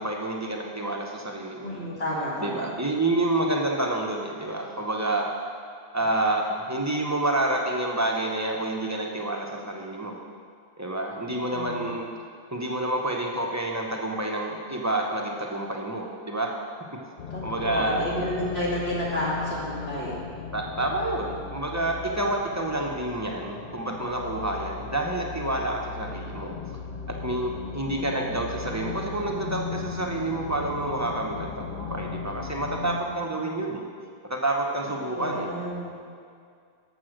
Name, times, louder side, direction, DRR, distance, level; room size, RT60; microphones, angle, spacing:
voice 1, 0.0-1.7 2.4-5.3 5.9-10.2 10.8-12.1 12.5-16.5 17.4-18.0 20.5-26.5 27.2-33.9 34.2-35.5, right 2 dB, 20° right, 0 dB, 0.7 m, -28 dB
voice 2, 1.6-2.7 11.5-11.9 17.3-20.2 27.6-28.1 33.1-33.4 35.1-35.9, equal, 75° left, -7 dB, 2.4 m, -31 dB
sound 1, 17.2-33.0, left 6 dB, 55° left, 0.7 m, -37 dB
6.9 x 6.2 x 6.3 m, 2.2 s
omnidirectional pair, 1.1 m